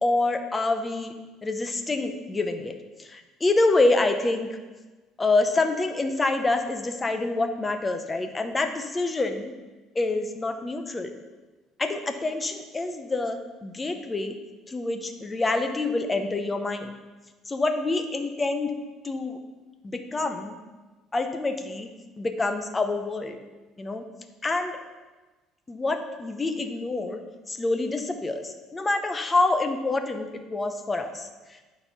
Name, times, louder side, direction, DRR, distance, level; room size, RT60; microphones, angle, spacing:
voice 1, 0.0-1.1 1.4-2.7 3.0-4.5 5.2-9.5 9.9-11.1 11.8-14.3 14.7-16.9 17.5-18.7 19.0-19.4 19.8-20.6 21.1-21.9 22.2-23.4 23.8-24.0 24.4-24.8 25.7-27.2 27.5-31.3, left 2 dB, 15° left, 6 dB, 0.7 m, -26 dB
9.3 x 4.2 x 5.8 m, 1.2 s
cardioid pair, 140°, 0 cm